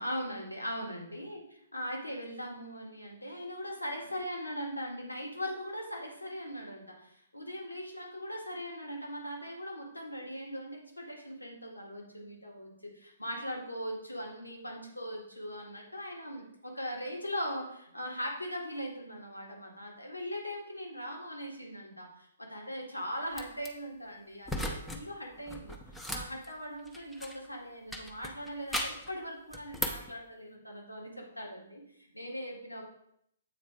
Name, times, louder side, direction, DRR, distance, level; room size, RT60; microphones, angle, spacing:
voice 1, 0.0-1.4 1.7-32.8, equal, 85° left, 0 dB, 1.8 m, -40 dB
sound 1, 23.3-23.7 24.4-25.0 25.3-27.5 27.9-29.1 29.5-30.1, equal, 5° left, 0.8 m, -37 dB
7.8 x 4.3 x 4.9 m, 0.73 s
figure-of-eight pair, 120°, 0 cm